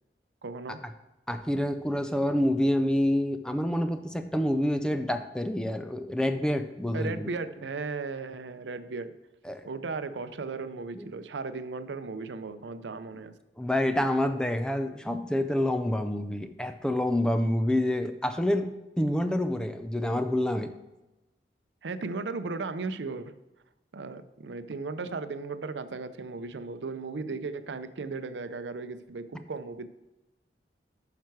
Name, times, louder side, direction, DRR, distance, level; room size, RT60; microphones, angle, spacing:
voice 1, 0.4-0.8 6.9-9.1 9.7-13.3 21.8-23.3 23.9-29.9, right 4 dB, 90° right, 11 dB, 0.6 m, -36 dB
voice 2, 1.3-7.3 9.5-9.6 10.9-11.1 13.6-20.7, left 1 dB, 5° left, 8 dB, 0.4 m, -27 dB
9.2 x 5.8 x 4.6 m, 1.0 s
head